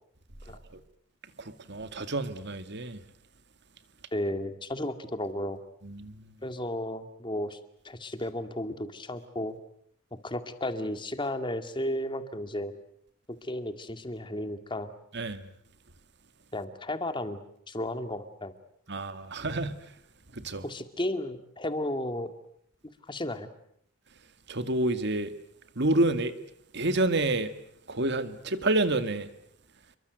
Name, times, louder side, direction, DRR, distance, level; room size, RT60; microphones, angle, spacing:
voice 1, 1.7-3.0 5.8-6.2 15.1-15.5 18.9-19.8 20.4-20.6 24.5-25.3 25.8-26.3 26.7-27.5 27.9-29.3, right 2 dB, 60° right, 2.1 m, -28 dB
voice 2, 4.1-5.6 6.4-7.6 7.8-9.6 10.2-12.7 13.3-14.9 16.5-17.4 17.7-18.5 20.6-22.3 23.1-23.5, left 1 dB, 25° left, 2.1 m, -33 dB
28.5 x 23.0 x 8.1 m
head